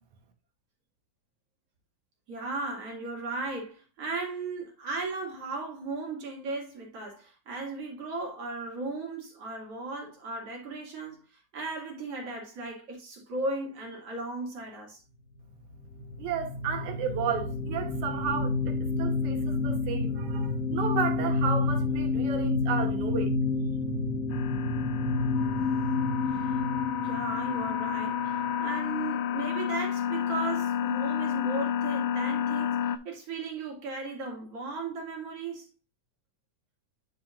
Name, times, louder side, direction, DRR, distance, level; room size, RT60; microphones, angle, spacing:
voice 1, 2.3-15.0 26.3-26.6 27.0-32.8 33.0-35.7, right 3 dB, 50° right, 3.1 m, -36 dB
sound 1, 16.0-28.4, left 3 dB, 50° left, 2.4 m, -29 dB
voice 2, 16.2-23.3, right 6 dB, 70° right, 2.4 m, -33 dB
sound 2, 24.3-33.0, left 9 dB, 90° left, 2.2 m, -30 dB
10.0 x 5.9 x 2.5 m
omnidirectional pair, 3.6 m